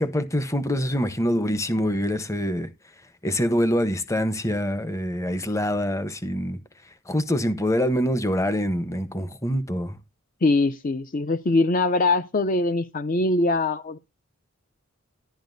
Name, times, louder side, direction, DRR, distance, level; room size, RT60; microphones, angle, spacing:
voice 1, 0.0-2.7 3.2-6.6 7.1-10.0, equal, 15° left, 0.9 m, -25 dB
voice 2, 10.4-14.0, left 2 dB, 40° left, 0.6 m, -22 dB
11.5 x 11.0 x 2.6 m
head